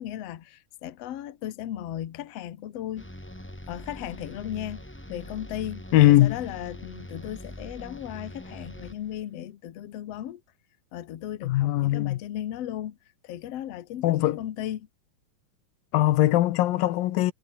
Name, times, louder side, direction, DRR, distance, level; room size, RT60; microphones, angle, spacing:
voice 1, 0.0-3.1 3.7-4.8 5.1-10.4 10.9-13.0 13.2-14.9, left 11 dB, 55° left, 2.1 m, -36 dB
sound 1, 3.0-9.2, left 1 dB, 5° left, 2.2 m, -43 dB
voice 2, 5.9-6.4 11.4-12.2 14.0-14.4 15.9-17.3, left 15 dB, 90° left, 2.8 m, -20 dB
omnidirectional pair, 4.0 m